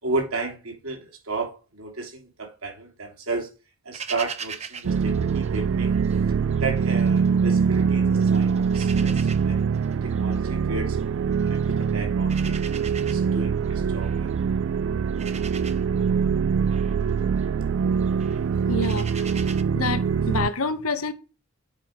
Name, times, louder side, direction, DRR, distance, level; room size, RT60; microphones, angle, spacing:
voice 1, 0.0-3.5 3.8-5.9 6.6-9.6 10.0-11.0 11.4-14.3, right 3 dB, 90° right, 3.0 m, -33 dB
sound 1, 3.9-6.2 6.5-7.8 8.1-19.6, right 6 dB, 30° right, 0.7 m, -41 dB
sound 2, 4.8-20.5, right 6 dB, 65° right, 0.3 m, -23 dB
voice 2, 18.7-19.1 19.7-21.1, left 3 dB, 90° left, 1.1 m, -27 dB
8.7 x 5.2 x 4.6 m
head